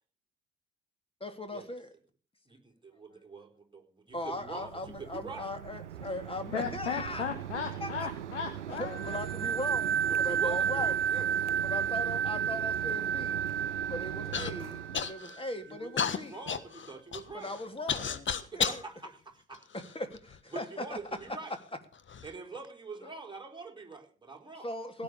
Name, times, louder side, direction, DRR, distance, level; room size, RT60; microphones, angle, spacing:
voice 1, 1.2-1.9 4.1-7.2 7.8-8.1 8.7-11.0 11.6-13.5 13.9-16.3 17.3-18.3 18.5-18.8 19.7-21.0 23.0-23.1 24.6-25.0, left 1 dB, 15° left, 8 dB, 3.3 m, -39 dB
voice 2, 2.5-5.5 10.1-11.6 15.7-17.5 18.5-19.7 20.5-21.5 22.2-24.7, right 4 dB, 15° right, 1 dB, 4.2 m, -45 dB
Mechanisms, 4.1-15.1, right 10 dB, 90° right, 0.7 m, -41 dB
voice 3, 6.5-9.2, left 6 dB, 90° left, 6 dB, 1.5 m, -36 dB
sound 1, 8.9-15.4, right 8 dB, 35° right, 0.9 m, -31 dB
Human voice / Cough, 14.3-14.5 14.9-15.4 16.0-18.8 19.5-20.4 21.1-21.2 21.9-22.3, left 7 dB, 35° left, 1.5 m, -33 dB
17.0 x 9.6 x 6.9 m, 0.39 s
hypercardioid pair, 55°, 35 cm